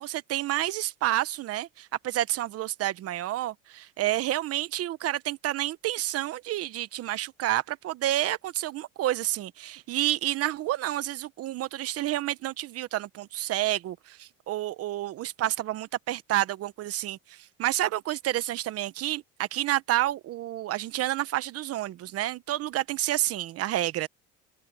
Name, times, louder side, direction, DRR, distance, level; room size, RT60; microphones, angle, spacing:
voice 1, 0.0-24.1, right 14 dB, 50° right, 1.1 m, -29 dB
supercardioid pair, 110°, 30 cm